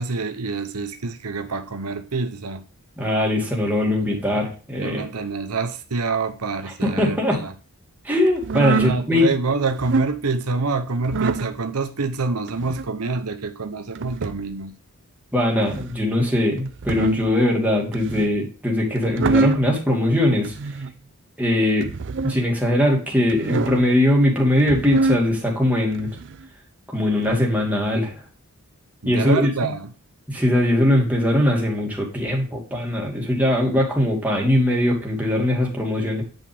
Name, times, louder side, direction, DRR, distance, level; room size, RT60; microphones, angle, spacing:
voice 1, 0.0-2.6 4.1-4.5 4.8-7.5 8.5-14.8 29.0-29.9, right 4 dB, 80° right, 0.9 m, -27 dB
voice 2, 3.0-5.1 6.8-7.4 8.0-9.3 15.3-20.5 21.4-21.9 22.2-26.1 26.9-28.1 29.1-29.7 30.3-36.2, left 1 dB, 5° right, 2.4 m, -20 dB
sound 1, 8.4-9.0 9.7-10.1 11.0-11.5 12.5-12.9 14.0-14.5 15.6-16.0 16.7-17.3 17.9-18.4 19.0-19.7 20.4-20.9 21.8-22.4 23.3-23.9 24.6-25.2 25.9-26.4 27.2-27.4, right 4 dB, 55° right, 0.5 m, -25 dB
9.0 x 5.3 x 3.5 m
head